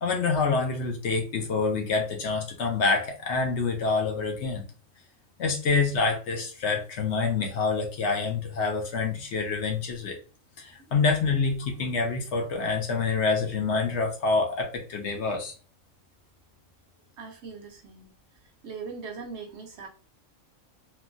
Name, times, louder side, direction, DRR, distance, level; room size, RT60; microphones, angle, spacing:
voice 1, 0.0-4.6 5.4-10.2 10.6-15.5, left 4 dB, 65° left, 3 dB, 0.9 m, -27 dB
voice 2, 17.2-18.1 18.6-19.9, right 5 dB, 65° right, 3 dB, 0.7 m, -40 dB
3.1 x 2.2 x 2.5 m, 0.35 s
omnidirectional pair, 1.4 m